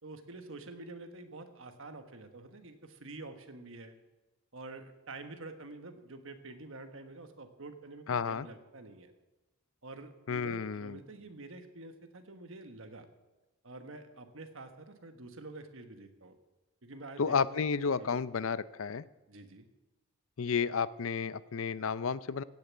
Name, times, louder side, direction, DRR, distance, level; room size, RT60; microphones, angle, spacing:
voice 1, 0.0-4.0 4.5-9.1 9.8-13.1 13.6-16.3 16.8-17.7 18.0-18.1 19.3-19.7, right 2 dB, 60° right, 7 dB, 1.4 m, -48 dB
voice 2, 8.1-8.5 10.3-11.0 17.2-19.0 20.4-22.4, left 5 dB, 65° left, 17 dB, 0.5 m, -32 dB
16.5 x 7.0 x 8.4 m, 1.1 s
head